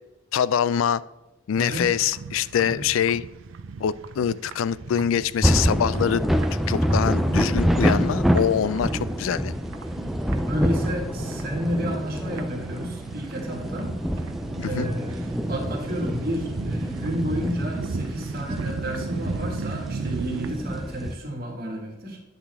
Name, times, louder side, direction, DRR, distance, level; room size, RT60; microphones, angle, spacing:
voice 1, 0.3-1.0 1.5-3.2 3.8-6.3 6.7-9.5 14.6-14.9, left 8 dB, 85° left, 18 dB, 0.3 m, -24 dB
voice 2, 1.5-1.9 2.6-2.8 8.8-9.1 10.4-13.9 14.6-22.2, equal, 45° right, -1 dB, 1.9 m, -32 dB
sound 1, 1.6-20.5, right 4 dB, 80° right, 0.5 m, -36 dB
sound 2, 5.4-21.1, equal, ahead, 0.3 m, -26 dB
10.5 x 6.0 x 3.5 m, 1.0 s
head